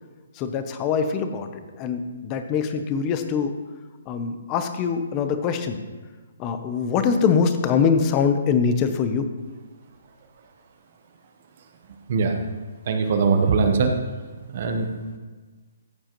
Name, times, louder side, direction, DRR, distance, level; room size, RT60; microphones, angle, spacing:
voice 1, 0.4-3.5 4.1-5.8 6.4-9.3, left 6 dB, 20° left, 8 dB, 0.6 m, -23 dB
voice 2, 12.1-12.4 12.9-14.0 14.5-14.9, right 5 dB, 40° right, 4 dB, 0.9 m, -21 dB
14.0 x 7.3 x 3.0 m, 1.4 s
hypercardioid pair, 170°, 0 cm